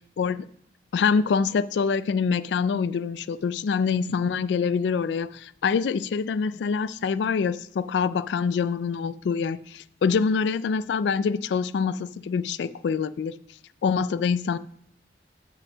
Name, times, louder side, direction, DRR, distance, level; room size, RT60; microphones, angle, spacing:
voice 1, 0.9-13.3 13.8-14.6, left 5 dB, 75° left, 16 dB, 0.3 m, -25 dB
7.4 x 5.4 x 6.1 m, 0.66 s
head